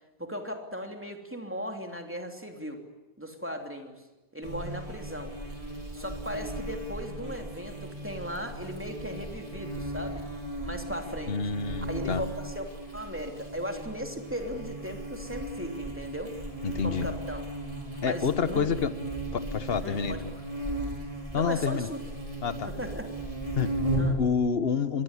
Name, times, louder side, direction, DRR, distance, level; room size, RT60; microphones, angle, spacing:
voice 1, 0.2-2.8 3.2-4.0 4.3-5.3 5.9-10.2 10.6-11.4 11.9-16.3 16.8-17.4 18.0-18.7 19.8-20.4 21.3-22.0 22.6-23.1 24.0-24.2, equal, 10° right, 4 dB, 3.2 m, -37 dB
Buzz, 4.4-24.2, right 1 dB, 35° right, 4.9 m, -36 dB
voice 2, 11.3-12.2 16.6-17.1 18.0-18.9 19.3-20.2 21.3-21.9 22.4-22.7 23.6-23.8 24.2-25.0, left 6 dB, 70° left, 12 dB, 1.4 m, -28 dB
24.5 x 21.5 x 10.0 m, 1.0 s
omnidirectional pair, 1.1 m